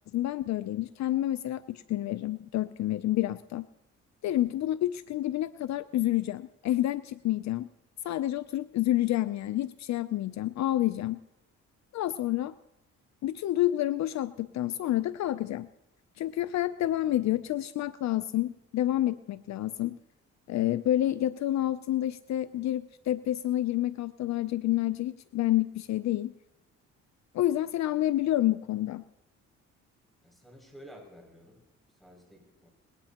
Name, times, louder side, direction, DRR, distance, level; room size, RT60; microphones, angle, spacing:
voice 1, 0.1-3.6 4.2-7.7 8.0-11.2 11.9-12.5 13.2-15.7 16.2-20.0 20.5-26.3 27.3-29.0, left 14 dB, 65° left, 14 dB, 0.5 m, -29 dB
voice 2, 30.2-31.6 31.9-32.7, equal, ahead, 1 dB, 6.3 m, -52 dB
20.5 x 18.0 x 2.9 m, 0.96 s
cardioid pair, 90°, 30 cm